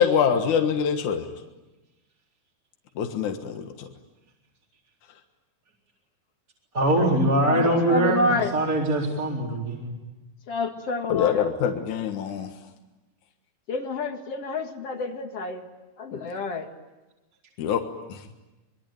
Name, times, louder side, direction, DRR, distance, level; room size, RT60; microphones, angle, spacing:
voice 1, 0.0-1.3 3.0-3.9 11.1-12.5 16.1-16.3 17.6-17.8 18.1-18.2, left 7 dB, 75° left, 5 dB, 2.9 m, -24 dB
voice 2, 6.7-9.9, right 1 dB, 25° right, -2 dB, 4.4 m, -23 dB
voice 3, 7.4-8.5 10.5-11.5 13.7-15.7 16.0-16.7, left 3 dB, 55° left, 5 dB, 2.9 m, -28 dB
26.5 x 23.0 x 9.0 m, 1.1 s
omnidirectional pair, 3.6 m